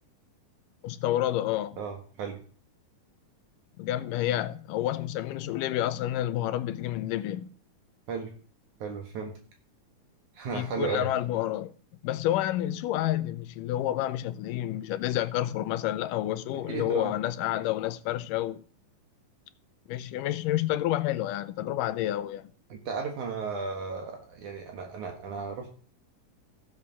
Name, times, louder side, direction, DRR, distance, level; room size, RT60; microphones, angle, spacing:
voice 1, 0.8-1.8 3.8-7.5 10.5-11.7 12.0-18.6 19.9-22.5, left 13 dB, 85° left, 2.3 m, -29 dB
voice 2, 1.8-2.4 8.1-8.3 8.8-9.4 10.3-11.1 16.7-17.1 22.7-25.7, right 5 dB, 70° right, 2.8 m, -34 dB
15.0 x 6.4 x 5.6 m
omnidirectional pair, 3.8 m